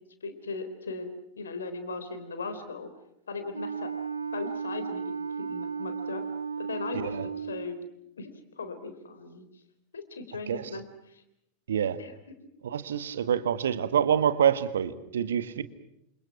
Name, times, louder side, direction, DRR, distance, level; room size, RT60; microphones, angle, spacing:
voice 1, 0.2-1.1 1.4-2.9 3.3-3.9 4.3-6.2 6.6-7.8 8.2-9.5 9.9-11.2 12.0-12.2, left 4 dB, 70° left, 9 dB, 3.8 m, -38 dB
Wind instrument woodwind instrument, 3.5-7.8, right 5 dB, 80° right, 2.0 m, -34 dB
voice 2, 11.7-12.0 12.6-15.6, right 8 dB, 65° right, 12 dB, 1.5 m, -26 dB
28.5 x 27.5 x 6.0 m, 0.82 s
figure-of-eight pair, 90°, 0 cm